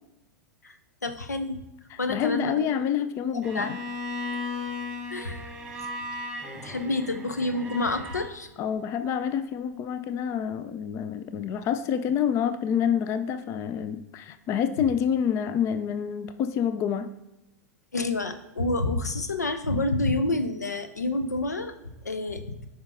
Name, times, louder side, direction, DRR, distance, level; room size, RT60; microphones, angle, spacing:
voice 1, 1.0-1.6 2.0-2.7 3.5-3.7 5.1-5.5 6.5-8.5 17.9-21.7 22.0-22.6, left 2 dB, 85° left, 10 dB, 0.6 m, -28 dB
voice 2, 1.9-3.8 8.6-17.1, left 8 dB, 30° left, 12 dB, 0.4 m, -27 dB
Bowed string instrument, 3.4-8.3, left 2 dB, 5° right, 1.3 m, -36 dB
8.6 x 5.5 x 2.6 m, 0.96 s
figure-of-eight pair, 95°, 9 cm